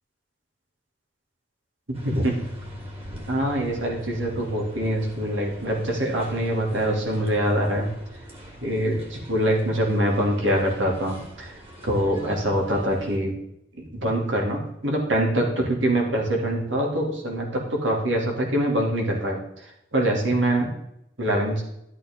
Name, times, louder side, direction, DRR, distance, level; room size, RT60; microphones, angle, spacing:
sound 1, 1.9-13.2, equal, 30° right, 2.5 m, -43 dB
voice 1, 2.0-2.4 3.3-7.9 8.6-11.6 11.8-13.3 13.9-20.7 21.2-21.6, right 1 dB, 90° right, 0 dB, 2.7 m, -24 dB
12.0 x 8.4 x 3.7 m, 0.79 s
head